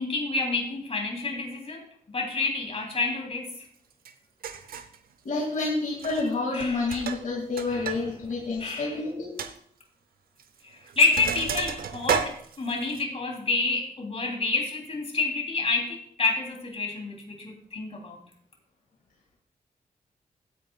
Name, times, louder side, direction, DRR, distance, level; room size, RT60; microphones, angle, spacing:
voice 1, 0.0-1.8 2.1-3.6 6.5-6.8 7.7-8.0 8.6-9.0 10.6-18.2, left 3 dB, 40° left, 1 dB, 3.2 m, -28 dB
Sink (filling or washing), 4.0-4.1 4.4-5.0 5.9-6.3 6.6-8.0 8.3-8.4 8.8-8.9 9.4-9.5 10.4-10.6 10.9-13.0, right 7 dB, 85° right, 0.7 m, -32 dB
voice 2, 5.2-9.4, left 3 dB, 65° left, -3 dB, 2.3 m, -29 dB
15.5 x 9.1 x 2.4 m, 0.63 s
cardioid pair, 85°, 15 cm